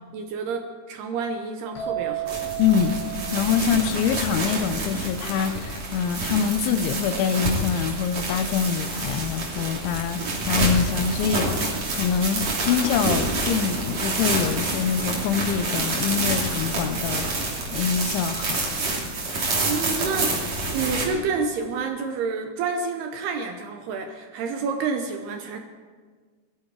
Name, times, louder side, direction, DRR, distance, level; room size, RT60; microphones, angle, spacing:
voice 1, 0.1-2.4 19.6-25.6, right 4 dB, 75° right, 5 dB, 2.6 m, -29 dB
sound 1, 1.8-5.4, right 12 dB, 60° left, 4.8 m, -34 dB
sound 2, 2.3-21.0, right 2 dB, 40° right, 3.5 m, -28 dB
voice 2, 2.6-10.2 10.5-17.5 17.7-18.6, left 7 dB, 80° left, 10 dB, 3.1 m, -25 dB
21.0 x 14.0 x 4.7 m, 1.5 s
omnidirectional pair, 5.5 m